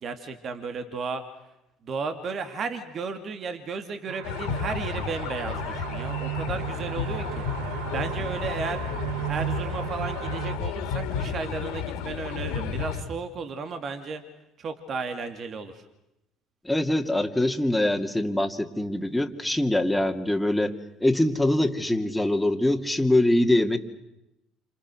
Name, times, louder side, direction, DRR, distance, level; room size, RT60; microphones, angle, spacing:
voice 1, 0.0-1.2 1.8-7.5 7.9-8.9 9.3-14.2 14.6-15.9, right 4 dB, 50° right, 8 dB, 2.5 m, -34 dB
sound 1, 4.1-10.6, right 17 dB, 75° right, 0.9 m, -35 dB
sound 2, 4.2-13.0, left 7 dB, 75° left, 2.7 m, -32 dB
voice 2, 16.6-20.7 21.0-23.8, left 1 dB, 5° left, 3 dB, 2.7 m, -23 dB
29.0 x 26.5 x 6.4 m, 0.90 s
hypercardioid pair, 65°, 0 cm